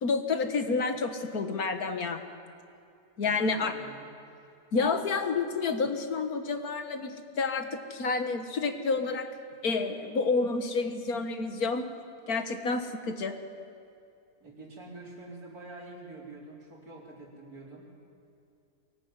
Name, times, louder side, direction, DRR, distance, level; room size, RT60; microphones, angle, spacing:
voice 1, 0.0-2.2 3.2-3.7 4.7-9.3 9.6-11.8 12.3-13.4, left 4 dB, 70° left, 7 dB, 2.0 m, -29 dB
voice 2, 3.2-4.1 14.4-18.0, right 2 dB, 75° right, -2 dB, 4.9 m, -46 dB
24.0 x 19.0 x 9.7 m, 2.6 s
omnidirectional pair, 1.6 m